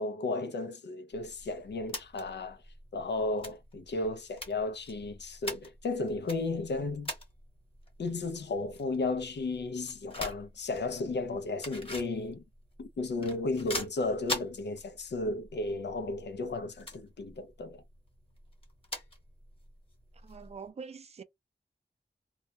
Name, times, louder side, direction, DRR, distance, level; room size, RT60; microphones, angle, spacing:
voice 1, 0.0-2.6 2.9-7.1 8.0-12.4 12.8-17.8, left 2 dB, 80° left, 0.5 m, -34 dB
sound 1, 1.1-20.7, left 1 dB, 30° left, 1.1 m, -45 dB
voice 2, 20.2-21.2, right 5 dB, 35° right, 0.4 m, -44 dB
2.3 x 2.1 x 2.7 m
wide cardioid pair, 75°, 18 cm